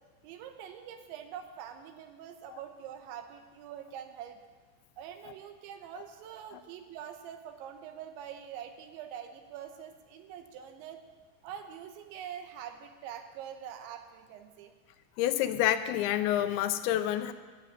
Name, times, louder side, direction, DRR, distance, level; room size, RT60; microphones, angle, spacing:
voice 1, 0.2-4.4 5.0-11.0 11.4-14.7, right 9 dB, 90° right, 6 dB, 3.3 m, -44 dB
voice 2, 15.2-17.3, left 12 dB, 85° left, 10 dB, 2.9 m, -28 dB
14.0 x 7.0 x 8.7 m, 1.4 s
omnidirectional pair, 5.2 m